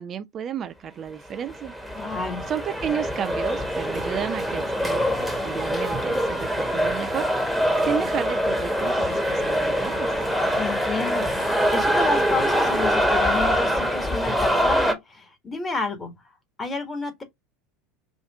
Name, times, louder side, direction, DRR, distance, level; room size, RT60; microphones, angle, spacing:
voice 1, 0.0-1.7 2.5-10.1, right 8 dB, 40° right, 0.5 m, -32 dB
sound 1, 1.3-14.9, equal, ahead, 1.3 m, -24 dB
voice 2, 1.9-2.5 10.6-16.1 16.6-17.2, left 3 dB, 20° left, 1.6 m, -30 dB
4.9 x 2.5 x 3.5 m
hypercardioid pair, 75°, 0 cm